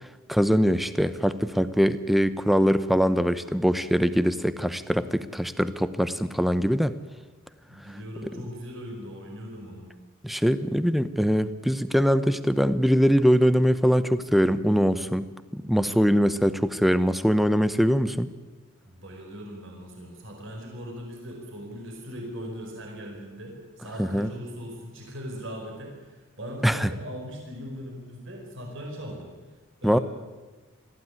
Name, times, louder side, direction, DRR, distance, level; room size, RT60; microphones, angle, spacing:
voice 1, 0.3-6.9 10.2-15.3 15.5-18.3 24.0-24.3 26.6-26.9 29.8-30.0, equal, ahead, 13 dB, 0.8 m, -22 dB
voice 2, 7.7-9.9 18.9-29.3 29.8-30.0, equal, 60° right, 1 dB, 4.9 m, -39 dB
22.0 x 15.0 x 9.6 m, 1.3 s
head